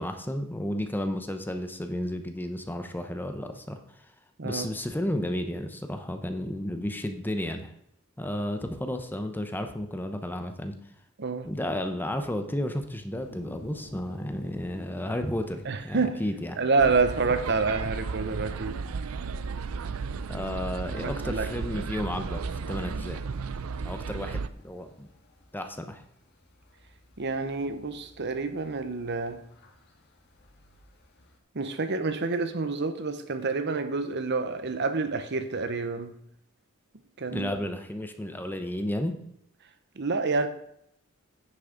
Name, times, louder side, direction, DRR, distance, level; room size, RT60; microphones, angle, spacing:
voice 1, 0.0-4.1 4.4-7.7 8.2-10.7 11.4-16.6 20.3-23.2 23.8-25.1 25.5-26.0 37.3-39.1, left 1 dB, 10° left, 0.8 m, -32 dB
voice 2, 11.2-11.5 15.7-16.2 16.6-18.8 21.0-21.5 27.2-29.4 31.5-36.1 37.2-37.5 40.0-40.5, right 4 dB, 55° right, 0.9 m, -28 dB
sound 1, 13.1-31.4, left 1 dB, 55° left, 1.9 m, -52 dB
sound 2, 16.8-24.5, right 5 dB, 85° right, 0.5 m, -34 dB
9.9 x 6.3 x 5.1 m
head